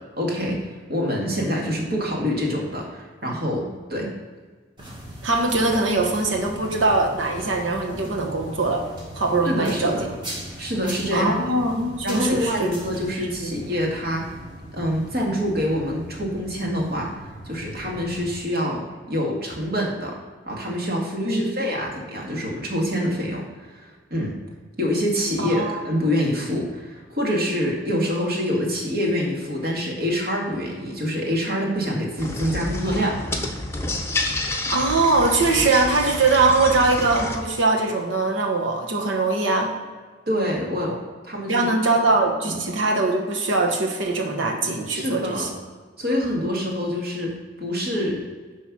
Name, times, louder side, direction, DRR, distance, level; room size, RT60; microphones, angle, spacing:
voice 1, 0.2-0.6 0.9-3.6 3.9-4.1 9.4-10.0 10.6-11.3 12.0-14.2 14.7-20.1 20.5-23.7 24.1-24.3 24.8-33.2 40.3-40.9 41.3-41.7 42.4-42.6 44.9-45.5 46.0-47.3 47.6-48.2, equal, 55° right, -2 dB, 1.9 m, -26 dB
sound 1, 4.8-18.3, right 1 dB, 25° right, 1.8 m, -39 dB
voice 2, 5.2-8.8 9.1-10.1 11.1-12.7 13.2-13.5 21.2-21.5 25.4-25.8 34.7-39.8 40.9-41.0 41.5-45.5, right 3 dB, 85° right, 1 dB, 1.2 m, -22 dB
sound 2, 32.2-37.4, left 2 dB, 15° left, 0.8 m, -29 dB
9.8 x 3.4 x 6.1 m, 1.4 s
head